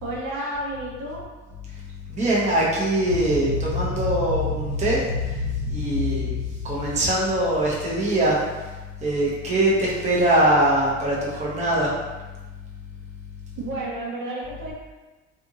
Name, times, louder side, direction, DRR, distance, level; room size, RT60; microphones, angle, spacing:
voice 1, 0.0-1.2 13.6-14.7, right 1 dB, 60° right, -4 dB, 1.0 m, -31 dB
voice 2, 2.1-5.0 5.7-6.4 6.6-8.4 9.0-11.9, right 1 dB, 20° right, -5 dB, 0.8 m, -22 dB
sound 1, 3.1-7.8, left 4 dB, 75° right, 1.3 m, -29 dB
2.6 x 2.6 x 2.7 m, 1.2 s
supercardioid pair, 70°, 35 cm